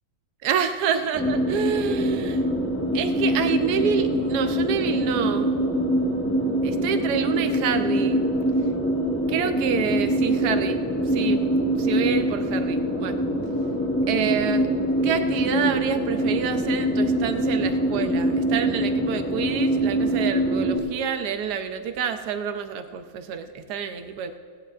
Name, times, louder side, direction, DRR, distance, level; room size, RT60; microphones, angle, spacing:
voice 1, 0.4-2.4 2.9-5.5 6.6-8.3 9.3-11.4 11.8-13.2 14.1-14.7 15.0-24.4, right 7 dB, 65° right, 8 dB, 1.2 m, -28 dB
sound 1, 1.1-20.8, right 1 dB, 10° left, 1.1 m, -24 dB
19.0 x 16.5 x 2.5 m, 2.1 s
omnidirectional pair, 2.3 m